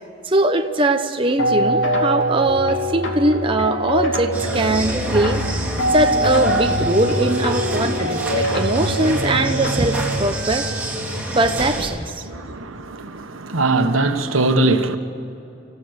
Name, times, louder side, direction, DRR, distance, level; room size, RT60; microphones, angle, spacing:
voice 1, 0.2-5.4 5.9-10.7 11.4-12.3, right 2 dB, 25° right, 0.9 m, -21 dB
sound 1, 1.4-10.2, equal, 75° left, 2.9 m, -23 dB
sound 2, 4.3-11.9, right 1 dB, 5° right, 4.1 m, -26 dB
voice 2, 12.2-15.0, right 2 dB, 90° right, 1.4 m, -21 dB
25.5 x 16.0 x 8.1 m
head